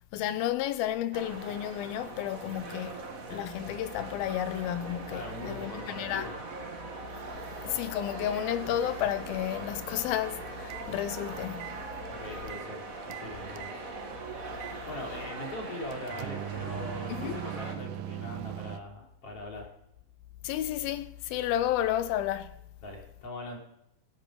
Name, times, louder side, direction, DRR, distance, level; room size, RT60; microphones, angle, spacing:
voice 1, 0.1-3.0 3.3-6.3 7.6-11.8 17.1-17.4 20.4-22.5, left 11 dB, 85° left, 2.7 m, -32 dB
sound 1, 1.1-17.8, right 3 dB, 40° right, 1.3 m, -41 dB
voice 2, 5.1-6.3 12.1-13.7 14.9-19.7 22.8-23.6, left 1 dB, 40° left, 4.1 m, -41 dB
sound 2, 10.6-10.9 11.5-12.7 13.0-13.8 14.6-14.8 15.9-18.8, right 13 dB, 80° right, 2.2 m, -39 dB
17.0 x 12.5 x 4.8 m
omnidirectional pair, 4.2 m